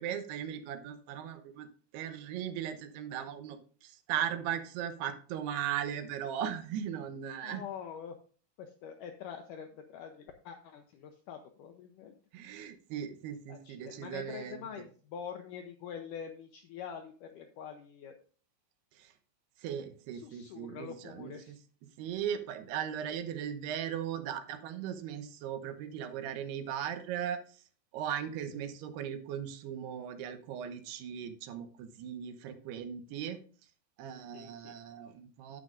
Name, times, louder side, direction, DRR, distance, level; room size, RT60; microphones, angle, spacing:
voice 1, 0.0-1.7 1.9-7.6 12.3-14.7 19.0-19.1 19.6-21.6 22.0-27.4 27.9-33.4 34.0-35.6, right 9 dB, 85° right, 8 dB, 3.0 m, -38 dB
voice 2, 7.4-8.1 8.6-12.1 13.5-18.1 20.1-21.6 28.5-28.6 34.3-34.8, left 7 dB, 85° left, 5 dB, 1.9 m, -45 dB
9.7 x 9.3 x 2.5 m, 0.42 s
omnidirectional pair, 4.6 m